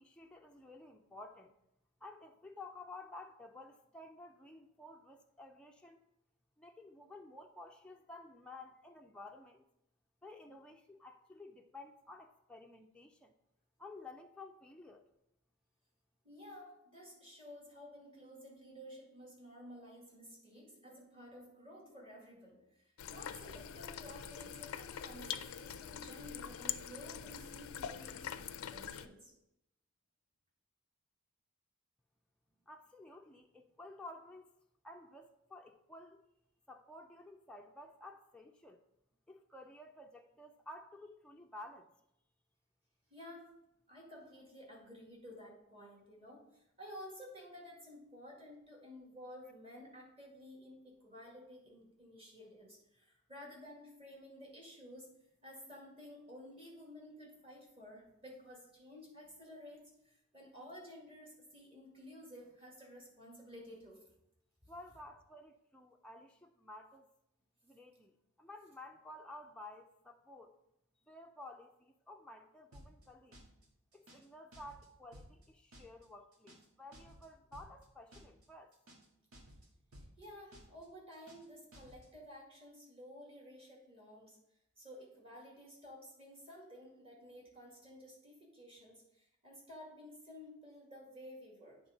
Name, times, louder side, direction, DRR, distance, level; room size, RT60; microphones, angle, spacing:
voice 1, 0.0-1.5 2.0-6.0 6.6-9.7 10.2-13.3 13.8-15.1 32.7-34.5 34.8-36.2 36.7-38.8 39.3-41.9 64.7-67.1 67.6-70.6 71.1-73.4 73.9-78.7, left 2 dB, 5° left, 1 dB, 0.4 m, -53 dB
voice 2, 16.2-29.3 43.1-43.6 43.9-55.1 55.4-64.0 64.6-64.7 80.2-84.4 84.8-91.8, equal, 25° right, -2 dB, 2.1 m, -53 dB
sound 1, 23.0-29.1, left 9 dB, 80° left, 0.4 m, -44 dB
sound 2, 72.7-73.1 73.3-73.7 73.9-74.3 74.5-74.9 75.1-75.5 75.7-76.1 76.3-76.7 76.9-77.3 77.5-77.9 78.1-78.5 78.7-79.1 79.3-79.7 79.9-80.3 80.5-80.9 81.1-81.5 81.7-82.1, equal, 80° right, 1.6 m, -56 dB
8.8 x 3.5 x 5.1 m, 0.82 s
head